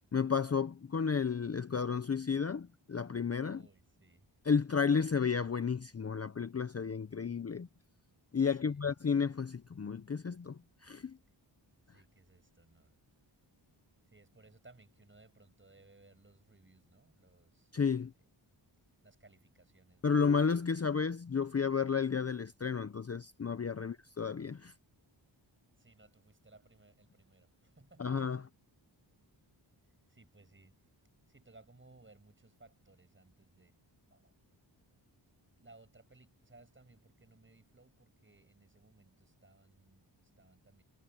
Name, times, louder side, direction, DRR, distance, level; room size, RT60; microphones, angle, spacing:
voice 1, 0.1-3.6 4.5-7.7 8.3-11.2 17.7-18.1 20.0-24.7 28.0-28.5, left 6 dB, 35° left, 0.7 m, -32 dB
voice 2, 3.5-4.3 4.7-4.8 8.5-8.9 11.9-13.0 14.1-17.8 18.2-18.3 19.0-20.5 23.8-24.0 25.8-28.2 30.1-30.8 31.3-33.8 34.1-34.4 35.6-40.8, right 2 dB, 25° right, 7.6 m, -62 dB
wide cardioid pair, 125°, 45 cm